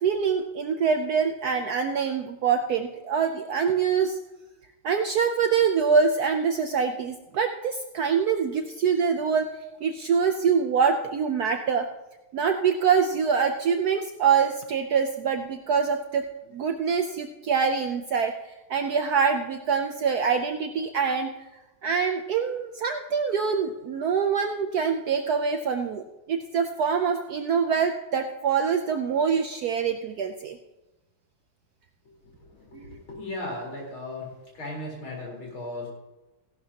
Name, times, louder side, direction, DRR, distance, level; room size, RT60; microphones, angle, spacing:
voice 1, 0.0-4.2 4.8-9.5 9.8-11.9 12.3-16.3 16.5-18.3 18.7-21.3 21.8-30.6 32.7-33.0, right 6 dB, 70° right, 6 dB, 0.9 m, -25 dB
voice 2, 32.4-34.3 34.5-35.9, left 2 dB, 80° left, -3 dB, 4.8 m, -36 dB
15.5 x 11.5 x 2.8 m, 1.0 s
omnidirectional pair, 2.3 m